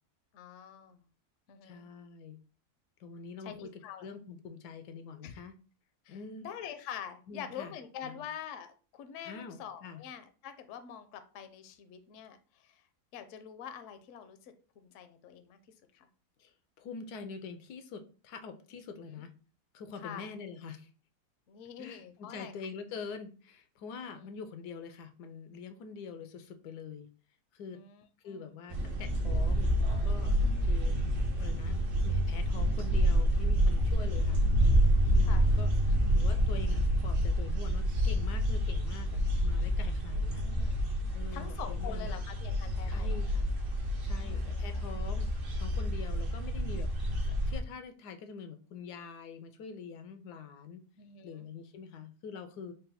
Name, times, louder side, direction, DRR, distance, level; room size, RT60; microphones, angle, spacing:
voice 1, 0.3-1.1 1.5-1.8 3.4-4.1 5.2-5.4 6.0-12.8 13.1-15.6 15.9-16.1 19.1-19.2 20.0-20.3 21.5-22.5 24.0-24.2 27.7-28.5 30.4-30.8 34.1-34.4 35.2-35.5 40.0-40.8 41.3-43.2 44.0-44.8 51.0-51.5, left 8 dB, 65° left, 8 dB, 0.8 m, -46 dB
voice 2, 1.6-2.4 3.0-3.7 4.0-5.5 6.1-6.5 7.3-7.7 8.0-8.2 9.2-10.0 16.4-19.3 19.7-20.9 21.8-27.1 27.5-27.8 28.2-29.7 30.0-30.4 30.7-31.0 31.4-34.4 35.1-40.4 41.1-42.2 42.9-43.5 44.0-46.9 47.2-50.8 51.2-52.7, left 5 dB, 85° left, 8 dB, 1.1 m, -45 dB
sound 1, 28.7-47.6, equal, 50° right, 0.7 m, -28 dB
3.8 x 2.3 x 4.0 m, 0.36 s
omnidirectional pair, 1.7 m